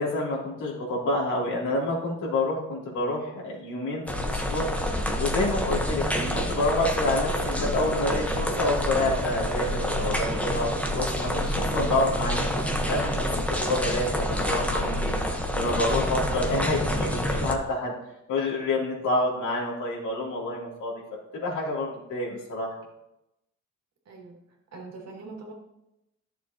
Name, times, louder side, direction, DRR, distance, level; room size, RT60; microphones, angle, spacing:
voice 1, 0.0-15.2 15.5-17.9 18.3-20.9 21.3-22.7, left 2 dB, 80° left, -5 dB, 3.2 m, -28 dB
sound 1, 4.1-17.5, equal, 5° left, 1.2 m, -27 dB
voice 2, 24.1-24.4 24.7-25.5, right 3 dB, 60° right, -1 dB, 2.4 m, -43 dB
11.5 x 7.0 x 3.0 m, 0.88 s
cardioid pair, 90°, 30 cm